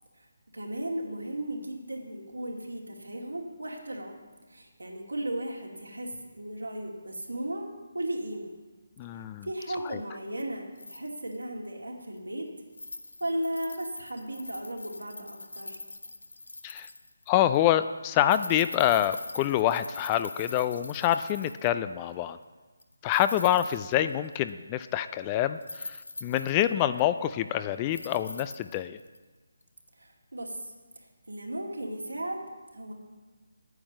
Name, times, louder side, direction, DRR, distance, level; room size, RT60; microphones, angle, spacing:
voice 1, 0.5-4.1 4.5-6.1 6.4-7.7 7.9-8.5 9.4-12.5 13.2-15.8 30.0-30.6 31.3-32.4 32.7-32.9, right 1 dB, 80° right, 0 dB, 2.5 m, -35 dB
voice 2, 9.0-9.5 9.8-10.0 16.6-16.9 17.3-22.4 23.0-29.0, left 12 dB, 20° left, 12 dB, 0.4 m, -26 dB
sound 1, 10.8-11.4 12.2-12.3 12.7-17.3 17.5-17.7 18.2-21.8 22.8-24.5 24.8-24.9 25.6-27.4 27.9-29.2 29.6-29.7, left 2 dB, 75° left, 0.8 m, -43 dB
9.3 x 8.7 x 6.3 m, 1.3 s
figure-of-eight pair, 150°, 0 cm